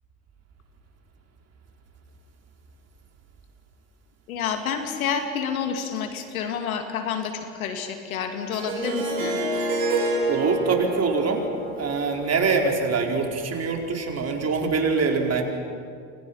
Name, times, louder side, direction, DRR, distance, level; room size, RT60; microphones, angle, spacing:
voice 1, 4.3-9.4, left 7 dB, 90° left, 5 dB, 2.8 m, -29 dB
Harp, 8.5-13.5, right 2 dB, 80° right, 7.7 m, -29 dB
voice 2, 10.3-11.4 11.8-15.4, right 4 dB, 35° right, 2 dB, 4.9 m, -24 dB
29.5 x 26.0 x 5.8 m, 2.3 s
hypercardioid pair, 75°, 41 cm